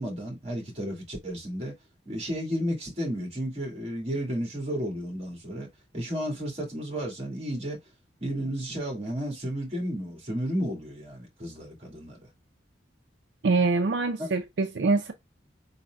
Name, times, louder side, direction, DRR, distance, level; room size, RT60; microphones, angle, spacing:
voice 1, 0.0-1.7 2.1-5.7 5.9-7.8 8.2-12.2 14.2-14.3, equal, 35° right, 1.8 m, -32 dB
voice 2, 13.4-15.1, right 3 dB, 65° right, 0.5 m, -24 dB
4.9 x 4.0 x 2.3 m
head